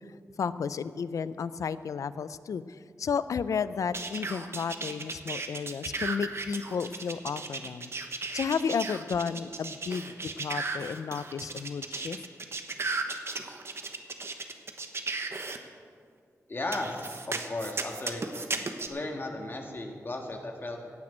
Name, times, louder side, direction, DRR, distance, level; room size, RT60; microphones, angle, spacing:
voice 1, 0.4-2.6 3.0-7.9 8.3-12.2, left 6 dB, 80° left, 15 dB, 0.4 m, -32 dB
sound 1, 3.9-15.6 16.7-18.9, right 3 dB, 50° right, 1.1 m, -35 dB
voice 2, 16.5-18.2 18.9-20.8, left 2 dB, 40° left, 2 dB, 1.6 m, -35 dB
16.5 x 6.1 x 8.8 m, 2.2 s
wide cardioid pair, 80°, 6 cm